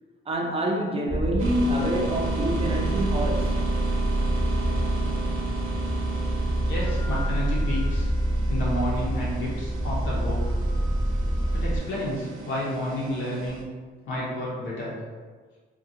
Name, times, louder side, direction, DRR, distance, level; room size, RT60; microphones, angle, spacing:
voice 1, 0.3-3.6, equal, 30° right, 0 dB, 0.5 m, -27 dB
sound 1, 1.1-11.8, right 1 dB, 15° left, 1.0 m, -26 dB
sound 2, 1.4-13.6, right 5 dB, 85° right, 0.5 m, -35 dB
voice 2, 6.6-8.1 8.5-10.5 11.5-13.7 14.1-14.9, equal, 75° left, -6 dB, 1.0 m, -31 dB
2.7 x 2.6 x 2.7 m, 1.4 s
cardioid pair, 90°, 20 cm